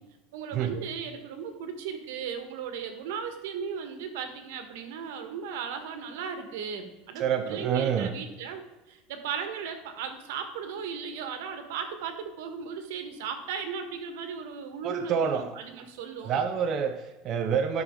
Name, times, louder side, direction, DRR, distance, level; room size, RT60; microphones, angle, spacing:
voice 1, 0.3-8.6 8.9-16.4, right 6 dB, 90° right, 7 dB, 1.5 m, -36 dB
voice 2, 7.2-8.1 14.8-15.6 16.2-17.8, right 7 dB, 35° right, 5 dB, 0.6 m, -27 dB
12.0 x 6.3 x 3.8 m, 1.1 s
cardioid pair, 170°, 0 cm